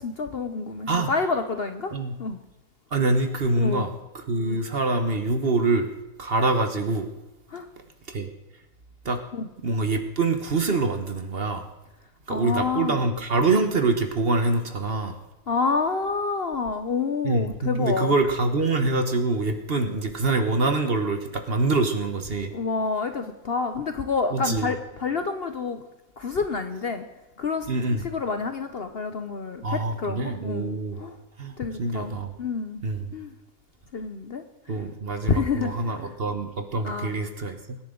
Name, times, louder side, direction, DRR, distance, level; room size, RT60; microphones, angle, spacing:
voice 1, 0.0-1.9 2.2-2.4 3.6-3.9 4.4-4.6 7.5-7.7 9.3-9.5 12.3-13.0 15.5-18.1 22.5-25.8 26.2-27.1 27.4-31.2 31.6-32.8 33.1-33.3 33.9-34.4 34.7-34.8 35.3-36.1 36.8-37.1, left 4 dB, 50° left, 7 dB, 0.8 m, -28 dB
voice 2, 2.9-5.9 6.2-7.1 8.1-8.3 9.0-9.2 9.6-11.6 12.3-15.2 17.2-22.5 24.3-24.7 27.7-28.0 29.6-31.0 31.4-32.3 32.8-33.1 34.7-37.8, right 3 dB, 45° right, 7 dB, 1.2 m, -25 dB
24.5 x 10.5 x 3.8 m, 1.0 s
omnidirectional pair, 1.6 m